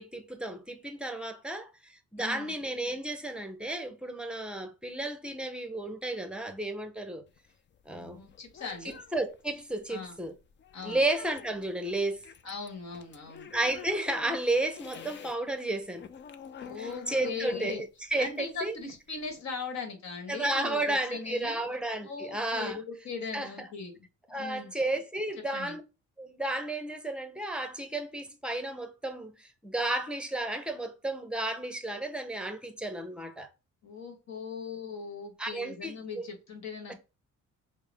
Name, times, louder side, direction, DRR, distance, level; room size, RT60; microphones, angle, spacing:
voice 1, 0.0-7.2 7.9-8.3 8.8-10.4 10.8-12.2 13.5-16.1 16.8-18.8 20.3-22.8 23.3-23.7 24.3-25.8 26.2-33.5 35.4-36.3 36.9-37.0, right 2 dB, 5° right, 0.7 m, -33 dB
voice 2, 2.2-2.5 7.9-9.0 9.9-10.1 10.7-11.1 12.4-13.5 16.6-17.8 18.2-21.6 22.0-23.9 24.3-24.7 25.4-25.8 33.8-36.9, left 4 dB, 65° left, 1.4 m, -39 dB
sound 1, 7.3-15.4 15.7-19.4, left 7 dB, 40° left, 0.4 m, -48 dB
4.6 x 2.1 x 3.4 m
cardioid pair, 90°, 30 cm